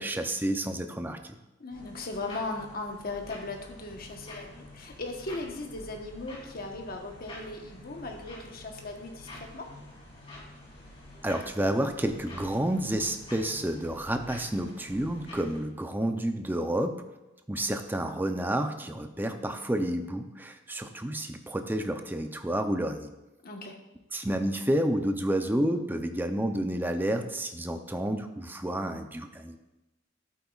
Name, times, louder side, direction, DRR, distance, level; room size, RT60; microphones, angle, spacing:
voice 1, 0.0-1.4 11.2-17.0 17.5-23.1 24.1-29.6, right 1 dB, 10° right, 6 dB, 0.6 m, -30 dB
voice 2, 1.6-9.7 23.4-23.8, left 2 dB, 50° left, 2 dB, 1.2 m, -38 dB
sound 1, 1.7-15.6, left 1 dB, 30° left, 3.1 m, -48 dB
11.5 x 8.5 x 2.4 m, 1.0 s
head